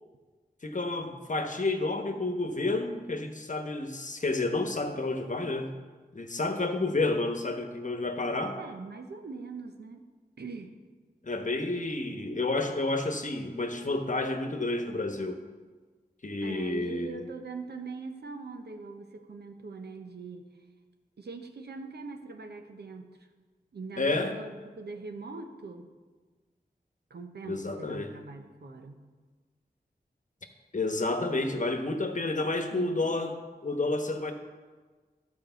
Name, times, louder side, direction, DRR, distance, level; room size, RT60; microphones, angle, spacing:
voice 1, 0.6-5.8 6.1-8.6 11.2-15.4 16.2-17.2 24.0-24.3 27.4-28.2 30.7-33.4 33.6-34.3, left 2 dB, 50° left, 6 dB, 1.1 m, -30 dB
voice 2, 8.6-10.0 10.4-10.8 16.4-20.5 21.2-23.2 23.7-25.9 27.1-29.0 32.7-33.1, right 4 dB, 85° right, 5 dB, 0.9 m, -42 dB
11.5 x 4.8 x 6.9 m, 1.4 s
cardioid pair, 40°, 17 cm